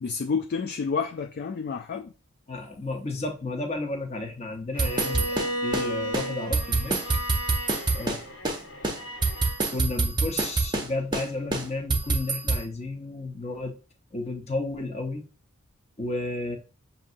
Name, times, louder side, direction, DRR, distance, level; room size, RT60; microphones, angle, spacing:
voice 1, 0.0-2.1, left 5 dB, 45° left, 0.3 m, -29 dB
voice 2, 2.5-7.0 7.9-8.3 9.7-13.8 14.1-15.2 16.0-16.6, left 2 dB, 30° left, 0.8 m, -32 dB
Bowed string instrument, 4.7-9.7, equal, 85° left, 1.6 m, -34 dB
sound 1, 4.8-5.9 6.1-6.3 6.5-8.2 8.4-8.6 8.8-10.9 11.1-11.3 11.5-12.6, right 3 dB, 20° right, 0.7 m, -25 dB
6.6 x 2.8 x 2.5 m
head